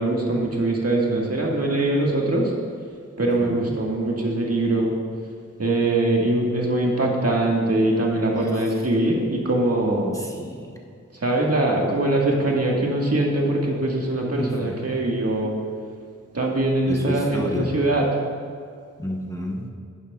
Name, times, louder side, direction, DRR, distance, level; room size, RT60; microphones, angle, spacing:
voice 1, 0.0-2.5 3.2-4.9 5.6-10.1 11.2-15.5 16.3-18.0, right 2 dB, 50° right, -2 dB, 1.6 m, -22 dB
voice 2, 3.4-3.8 10.1-10.8 14.4-15.0 16.9-17.8 19.0-19.7, left 1 dB, 10° left, -1 dB, 1.0 m, -30 dB
11.0 x 11.0 x 2.3 m, 2.2 s
wide cardioid pair, 75°, 31 cm